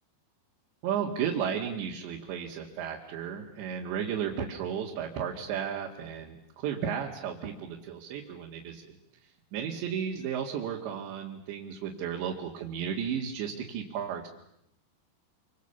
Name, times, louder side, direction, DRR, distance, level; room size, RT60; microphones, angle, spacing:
voice 1, 0.8-9.0 9.5-14.3, right 8 dB, 75° right, 0 dB, 4.2 m, -34 dB
28.0 x 25.0 x 7.0 m, 0.80 s
omnidirectional pair, 5.3 m